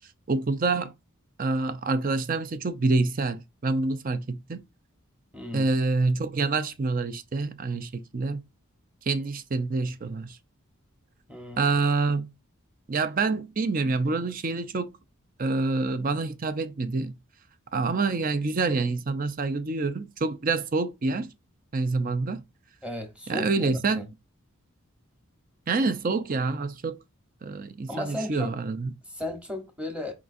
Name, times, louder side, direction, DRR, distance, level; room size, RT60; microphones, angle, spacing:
voice 1, 0.3-0.9 1.4-4.6 5.5-8.4 9.1-10.4 11.6-12.3 12.9-14.9 15.4-17.2 17.7-21.3 21.7-22.4 23.3-24.0 25.7-27.0 27.4-28.9, right 3 dB, 40° right, 0.5 m, -27 dB
voice 2, 5.3-5.7 11.3-11.8 22.8-24.1 27.9-28.5 29.1-30.1, left 1 dB, 5° right, 1.1 m, -35 dB
4.8 x 3.8 x 2.6 m
head